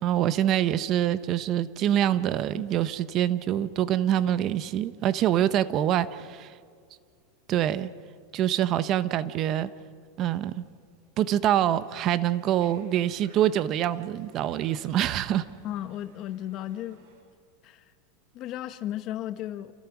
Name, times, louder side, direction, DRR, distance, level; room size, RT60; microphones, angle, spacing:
voice 1, 0.0-6.5 7.5-7.9 8.3-9.7 10.2-10.6 11.2-15.4, right 11 dB, 35° right, 0.8 m, -25 dB
Conversation, 11.7-17.2, right 5 dB, 70° right, 6.8 m, -58 dB
voice 2, 15.6-17.0 17.6-17.8 18.3-19.7, left 12 dB, 40° left, 1.1 m, -34 dB
29.0 x 27.0 x 6.0 m
supercardioid pair, 145°, 0 cm